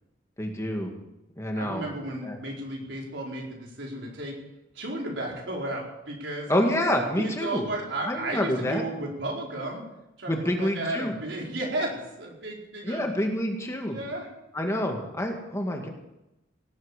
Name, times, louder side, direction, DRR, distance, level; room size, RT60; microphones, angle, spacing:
voice 1, 0.4-0.9 1.4-1.8 2.2-2.4 6.5-7.6 8.1-8.8 10.3-11.1 12.8-14.0 14.5-15.9, equal, 15° left, 2 dB, 2.1 m, -27 dB
voice 2, 1.5-4.4 4.7-6.5 7.2-9.8 10.2-13.1 13.9-14.3 14.6-14.8, right 1 dB, 75° right, -2 dB, 4.7 m, -34 dB
18.0 x 9.2 x 8.3 m, 0.93 s
head